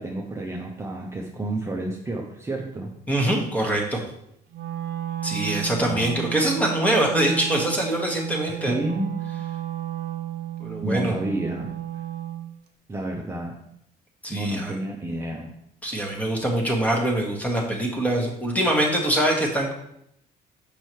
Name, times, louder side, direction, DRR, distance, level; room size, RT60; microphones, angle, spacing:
voice 1, 0.0-2.9 5.9-6.2 8.5-9.2 10.8-11.7 12.9-13.6 14.3-15.5, right 1 dB, 15° right, -1 dB, 0.7 m, -30 dB
voice 2, 3.1-4.0 5.2-8.8 10.6-11.1 14.2-14.7 15.8-19.7, right 1 dB, 10° left, 0 dB, 1.4 m, -24 dB
Wind instrument woodwind instrument, 4.5-12.5, right 12 dB, 75° right, 0.7 m, -33 dB
6.1 x 5.5 x 3.1 m, 0.76 s
cardioid pair, 110°, 17 cm